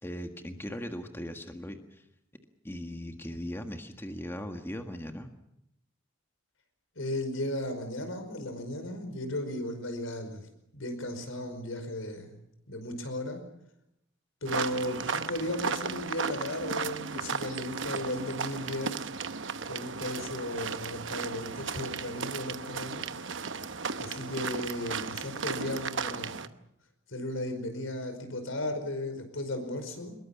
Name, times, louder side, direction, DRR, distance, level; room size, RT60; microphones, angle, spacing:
voice 1, 0.0-2.1 2.6-5.3, equal, 10° left, 5 dB, 1.6 m, -39 dB
voice 2, 7.0-10.5 10.7-12.4 12.7-13.4 14.4-19.1 19.7-23.1 24.0-26.5 27.1-30.2, left 1 dB, 85° left, 7 dB, 5.2 m, -35 dB
sound 1, 14.5-26.5, right 5 dB, 65° right, 1.0 m, -35 dB
24.0 x 21.5 x 7.2 m, 0.79 s
head